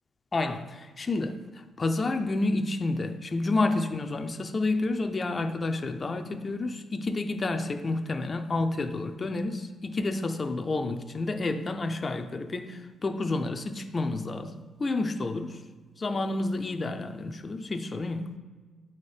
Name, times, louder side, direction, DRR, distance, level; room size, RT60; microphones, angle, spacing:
voice 1, 0.3-14.5 14.8-15.6 16.0-18.3, left 2 dB, 30° left, 7 dB, 0.4 m, -30 dB
6.5 x 4.2 x 4.9 m, 1.4 s
cardioid pair, 100°, 0 cm